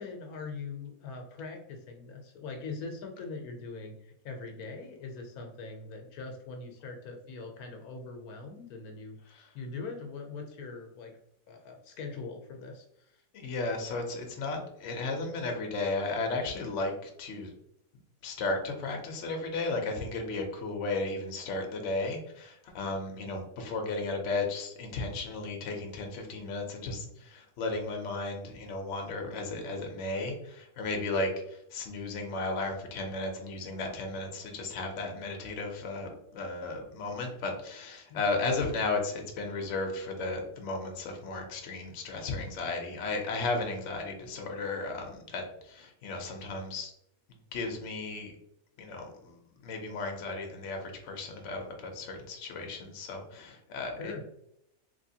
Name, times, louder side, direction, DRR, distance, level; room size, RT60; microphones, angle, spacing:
voice 1, 0.0-9.2 9.5-11.2 11.5-13.1 38.1-38.2 54.0-54.2, left 4 dB, 80° left, 3 dB, 1.1 m, -42 dB
voice 2, 13.3-17.5 18.2-46.9 47.5-48.4 48.8-54.2, left 3 dB, 60° left, 2 dB, 1.0 m, -34 dB
3.3 x 3.2 x 2.7 m, 0.77 s
omnidirectional pair, 1.5 m